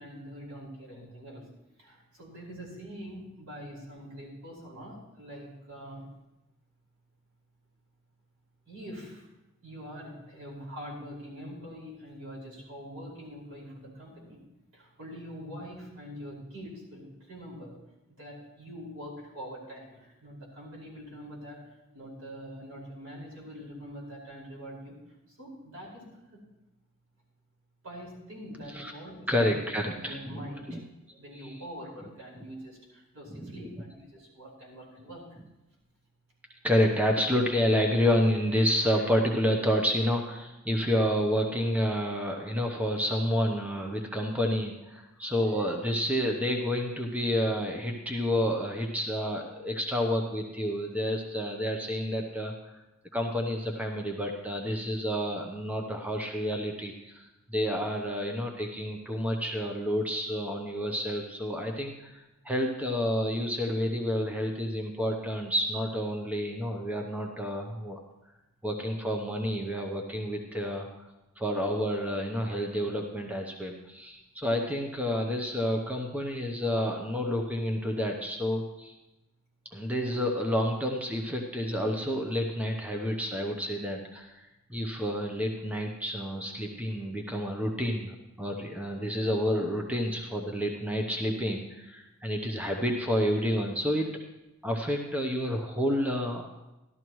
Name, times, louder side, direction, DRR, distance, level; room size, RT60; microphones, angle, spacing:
voice 1, 0.0-1.4 1.8-6.0 8.7-9.3 9.6-14.4 14.7-17.8 18.2-21.6 21.9-25.0 25.3-26.4 27.8-29.5 29.9-30.8 31.2-35.2, equal, 80° right, -4 dB, 5.2 m, -44 dB
voice 2, 29.3-30.4 30.7-30.8 31.4-31.5 33.3-33.5 36.6-52.5 53.1-68.0 68.6-70.9 71.4-78.9 79.7-94.1 94.6-96.5, equal, 5° right, 2 dB, 0.8 m, -29 dB
14.0 x 12.0 x 3.1 m, 0.99 s
head